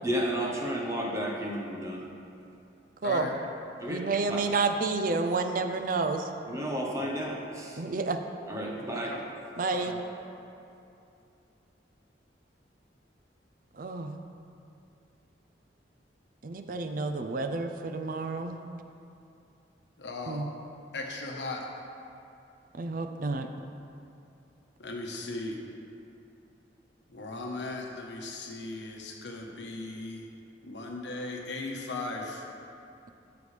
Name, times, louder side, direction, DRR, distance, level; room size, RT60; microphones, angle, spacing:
voice 1, 0.0-2.1 3.8-4.0 4.3-4.4 6.5-7.8 8.5-9.1, equal, 15° right, -2 dB, 1.1 m, -32 dB
voice 2, 3.0-3.3 8.8-9.2 9.7-10.0 20.0-20.4 20.9-21.7 24.8-25.6 27.1-30.3 30.6-32.4, left 2 dB, 80° left, 1 dB, 1.1 m, -37 dB
voice 3, 3.9-6.3 7.8-8.2 9.6-10.0 13.8-14.1 16.4-18.6 20.3-20.5 22.8-23.5, right 3 dB, 50° right, 6 dB, 0.5 m, -30 dB
13.0 x 6.9 x 3.3 m, 2.7 s
head